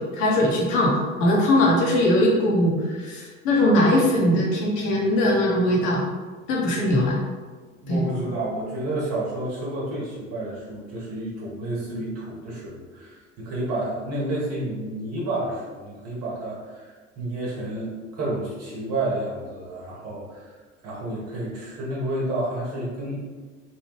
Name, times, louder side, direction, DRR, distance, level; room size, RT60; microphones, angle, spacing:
voice 1, 0.0-6.0 6.5-7.2 7.9-8.0, left 1 dB, 50° left, -3 dB, 0.8 m, -20 dB
voice 2, 7.7-20.5 20.8-23.2, right 1 dB, 40° right, -5 dB, 1.2 m, -30 dB
3.1 x 2.2 x 3.0 m, 1.4 s
figure-of-eight pair, 65°, 37 cm